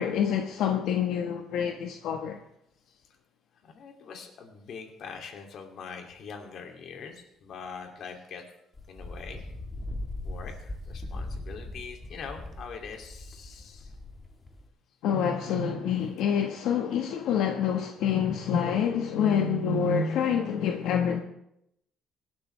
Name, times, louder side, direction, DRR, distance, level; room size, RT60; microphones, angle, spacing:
voice 1, 0.0-2.4 15.0-21.2, left 7 dB, 70° left, 1.4 m, -27 dB
voice 2, 3.6-8.4 8.9-9.4 10.2-13.9, left 6 dB, 45° left, 2.7 m, -43 dB
Wind, 8.7-14.7, left 1 dB, 15° left, 1.7 m, -39 dB
24.5 x 12.0 x 3.4 m
cardioid pair, 175°, 0 cm